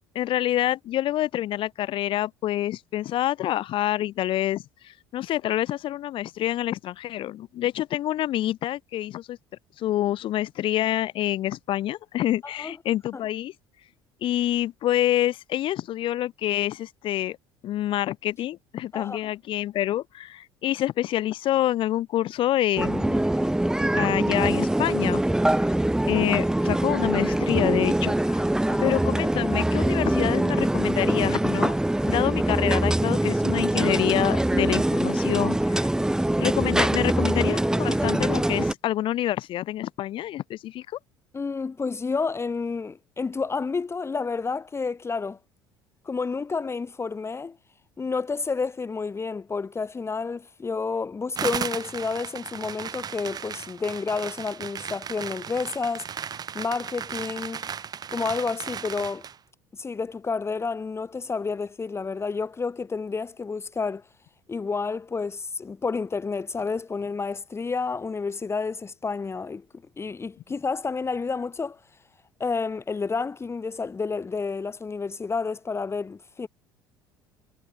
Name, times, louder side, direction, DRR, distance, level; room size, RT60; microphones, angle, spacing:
voice 1, 0.2-9.4 9.8-13.5 14.2-17.4 17.6-23.2 24.0-25.2 25.6-25.7 26.1-28.5 28.8-31.8 32.1-35.9 36.4-40.9, left 13 dB, 50° left, 1.7 m, -27 dB
sound 1, 22.8-38.7, right 1 dB, 5° right, 2.0 m, -23 dB
voice 2, 41.3-45.4 46.1-47.6 48.0-56.1 56.5-57.6 58.1-59.3 59.7-64.0 64.5-69.6 70.0-71.8 72.4-76.5, left 4 dB, 20° left, 1.8 m, -30 dB
sound 2, 51.4-59.4, right 7 dB, 35° right, 2.0 m, -35 dB
figure-of-eight pair, 60°, 11 cm